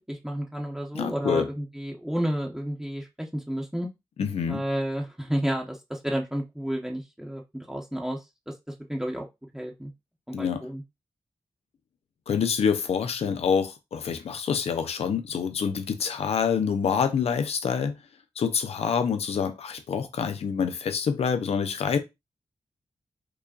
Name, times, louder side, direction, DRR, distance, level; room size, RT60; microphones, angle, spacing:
voice 1, 0.1-3.9 4.5-8.2 8.5-8.6 8.9-9.2 9.5-9.9 10.3-10.8, equal, 5° right, 0.9 m, -31 dB
voice 2, 0.9-1.5 4.2-4.6 10.3-10.7 12.3-18.0 18.4-22.0, left 6 dB, 80° left, 0.6 m, -26 dB
4.8 x 2.5 x 2.4 m
cardioid pair, 45°, 10 cm